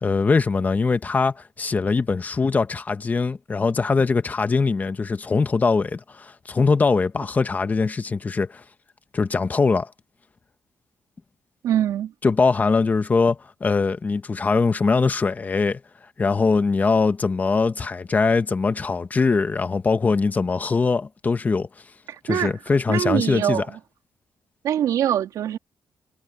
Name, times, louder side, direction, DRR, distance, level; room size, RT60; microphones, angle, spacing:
voice 1, 0.0-8.6 9.1-9.9 12.2-15.8 16.2-21.7 22.2-23.6, left 4 dB, 30° left, 1.3 m, -22 dB
voice 2, 11.6-12.1 22.1-22.5 22.9-23.7 24.6-25.6, right 10 dB, 80° right, 3.4 m, -23 dB
cardioid pair, 110°, 6 cm